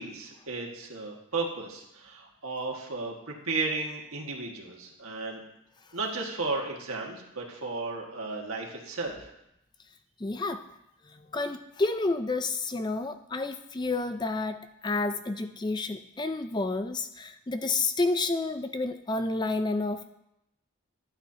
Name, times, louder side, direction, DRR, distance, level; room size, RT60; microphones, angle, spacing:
voice 1, 0.0-3.1 3.5-5.4 5.9-9.3, right 3 dB, 90° right, 0 dB, 1.8 m, -34 dB
voice 2, 10.2-10.7 11.1-20.0, left 3 dB, 20° left, 8 dB, 0.4 m, -30 dB
12.0 x 9.2 x 2.9 m, 0.83 s
head